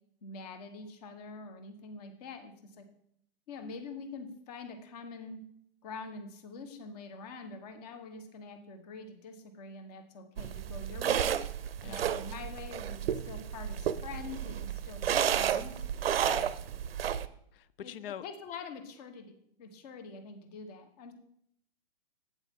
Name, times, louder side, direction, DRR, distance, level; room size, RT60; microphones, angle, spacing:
voice 1, 0.2-2.9 3.5-5.4 5.8-11.3 11.8-15.8 17.8-21.1, left 4 dB, 40° left, 7 dB, 1.2 m, -45 dB
sound 1, 10.4-17.3, right 9 dB, 70° right, 0.6 m, -32 dB
voice 2, 16.2-16.5 17.5-18.2, left 10 dB, 65° left, 18 dB, 0.5 m, -44 dB
8.5 x 8.2 x 3.6 m, 0.70 s
hypercardioid pair, 135°, 31 cm